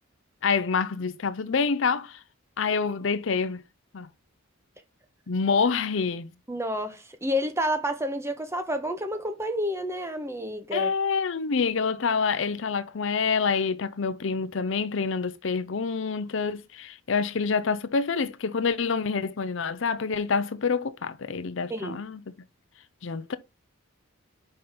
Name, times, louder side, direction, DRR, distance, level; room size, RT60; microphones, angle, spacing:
voice 1, 0.4-2.2 2.6-3.6 3.9-4.1 5.3-6.3 10.7-22.2 23.0-23.4, left 5 dB, 60° left, 0.6 m, -27 dB
voice 2, 6.5-10.9 21.7-22.0, equal, 10° right, 1.1 m, -29 dB
5.4 x 5.1 x 5.7 m
head